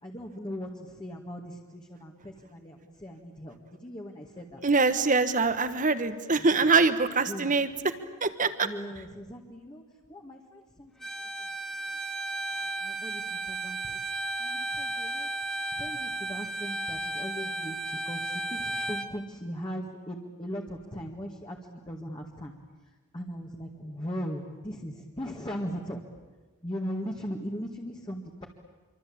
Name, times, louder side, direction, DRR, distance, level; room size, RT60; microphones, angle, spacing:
voice 1, 0.0-4.6 6.4-6.7 7.3-7.5 8.6-9.8 10.1-11.1 12.5-14.0 14.4-15.3 15.7-17.8 18.1-22.5 23.1-26.0 26.6-28.5, equal, 20° left, 0 dB, 2.0 m, -39 dB
voice 2, 4.6-7.9 8.2-8.7, right 4 dB, 35° right, 11 dB, 1.4 m, -24 dB
Bowed string instrument, 11.0-19.1, right 2 dB, ahead, 1.3 m, -34 dB
26.0 x 25.0 x 8.8 m, 1.3 s
head